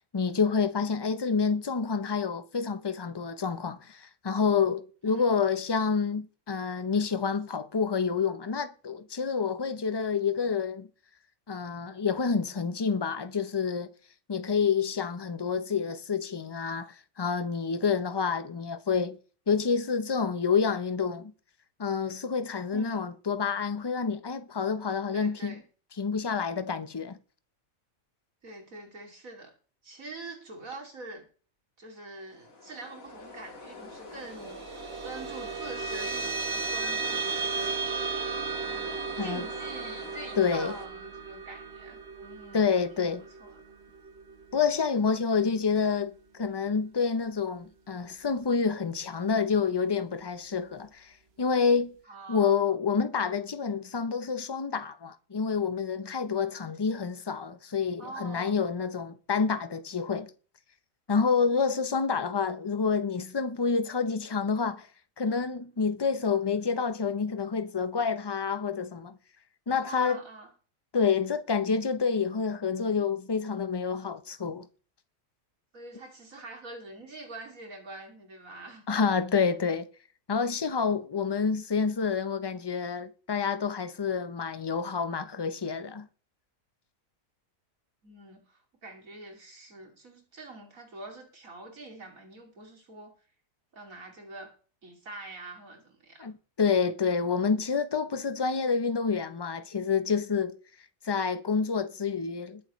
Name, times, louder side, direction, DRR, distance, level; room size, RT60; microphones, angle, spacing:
voice 1, 0.1-10.9 11.5-13.9 14.3-19.2 19.5-21.3 21.8-25.6 26.0-27.2 39.2-39.5 40.4-40.7 42.5-43.2 44.5-51.1 51.4-51.9 52.3-60.3 61.1-64.9 65.2-69.2 69.7-70.2 70.9-74.7 78.9-79.9 80.3-86.1 96.2-100.6 101.0-102.6, left 5 dB, 25° left, 0.6 m, -28 dB
voice 2, 22.7-23.1 25.1-25.6 28.4-29.5 29.8-31.3 31.8-37.8 38.6-43.6 52.1-52.7 56.6-56.7 58.0-58.6 69.8-70.5 75.7-78.9 88.0-93.1 93.7-94.5 94.8-96.3, right 2 dB, 75° right, 3.2 m, -45 dB
sound 1, 32.2-40.9, left 3 dB, 75° left, 2.4 m, -45 dB
sound 2, 34.1-44.9, right 5 dB, 50° right, 1.1 m, -35 dB
21.0 x 7.5 x 3.1 m
omnidirectional pair, 1.4 m